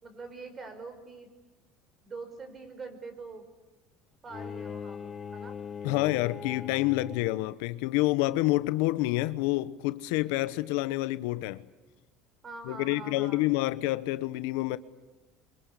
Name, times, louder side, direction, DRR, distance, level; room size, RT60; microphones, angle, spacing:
voice 1, 0.0-1.3 2.0-3.5 4.2-5.6 12.4-13.5, right 3 dB, 25° right, 5.5 m, -44 dB
Bowed string instrument, 4.3-7.5, left 6 dB, 25° left, 1.0 m, -40 dB
voice 2, 5.8-11.6 12.7-14.8, left 18 dB, 80° left, 1.1 m, -28 dB
27.0 x 24.5 x 8.4 m
supercardioid pair, 125°, 0 cm